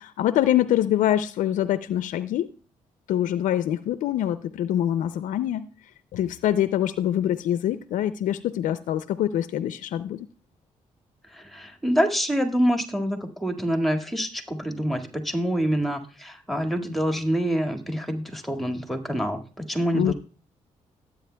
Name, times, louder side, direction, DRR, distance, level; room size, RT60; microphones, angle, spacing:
voice 1, 0.0-2.5 3.1-5.7 6.1-10.3 19.9-20.1, left 11 dB, 80° left, 13 dB, 0.4 m, -24 dB
voice 2, 11.3-19.4 19.7-20.1, equal, ahead, 5 dB, 1.9 m, -26 dB
17.5 x 8.8 x 2.2 m, 0.39 s
cardioid pair, 70°, 13 cm